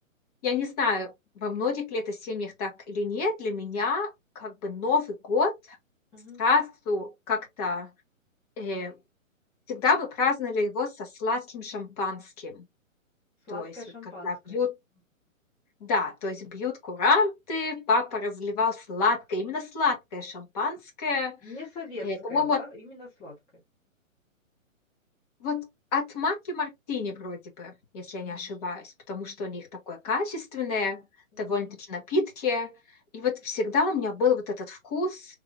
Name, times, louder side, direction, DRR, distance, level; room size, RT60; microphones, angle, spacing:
voice 1, 0.4-5.5 6.4-7.9 8.6-8.9 9.7-12.6 13.5-13.7 14.2-14.7 15.8-21.4 22.0-22.6 25.4-25.7 25.9-31.0 31.4-32.7 33.1-35.4, left 4 dB, 30° left, 1.1 m, -28 dB
voice 2, 13.5-14.6 21.4-23.4 28.2-28.6 31.3-31.7, left 2 dB, 10° left, 0.6 m, -42 dB
3.2 x 2.7 x 3.1 m
hypercardioid pair, 155°, 41 cm